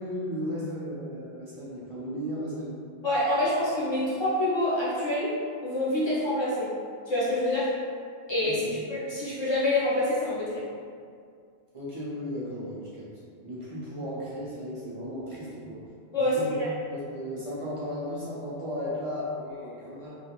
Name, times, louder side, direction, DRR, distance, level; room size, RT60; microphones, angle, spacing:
voice 1, 0.0-2.8 8.4-8.7 11.7-13.1 13.4-15.8 16.2-16.6 16.9-20.1, equal, 40° right, -9 dB, 0.6 m, -35 dB
voice 2, 3.0-5.3 5.6-6.7 7.1-7.7 8.3-8.6 8.9-10.6 16.1-16.7, left 1 dB, 35° left, -10 dB, 0.5 m, -26 dB
2.4 x 2.1 x 2.8 m, 2.2 s
omnidirectional pair, 1.1 m